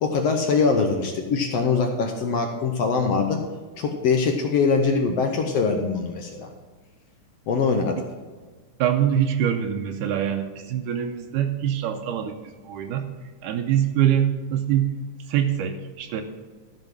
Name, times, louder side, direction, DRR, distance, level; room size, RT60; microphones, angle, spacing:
voice 1, 0.0-3.4 3.8-6.5 7.5-8.0, left 4 dB, 70° left, 3 dB, 1.5 m, -23 dB
voice 2, 8.8-13.1 13.4-14.9 15.3-16.2, right 10 dB, 85° right, 4 dB, 2.2 m, -24 dB
14.5 x 5.3 x 6.0 m, 1.4 s
omnidirectional pair, 3.6 m